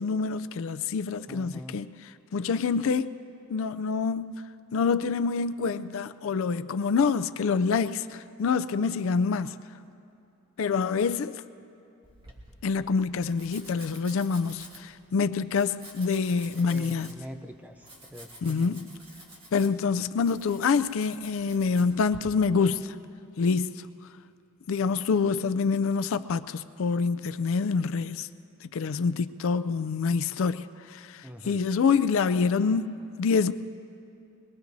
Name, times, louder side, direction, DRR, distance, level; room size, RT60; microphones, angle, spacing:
voice 1, 0.0-3.2 3.5-4.4 4.7-9.6 10.6-11.4 12.6-17.2 18.4-18.9 19.5-23.0 23.4-23.9 24.7-28.3 28.6-33.5, left 5 dB, 65° left, 0.4 m, -26 dB
voice 2, 1.3-1.8 16.6-18.8 31.2-31.6, equal, 5° right, 0.6 m, -44 dB
Domestic sounds home sounds, 12.0-22.2, right 1 dB, 25° right, 2.0 m, -50 dB
22.5 x 22.0 x 2.7 m
head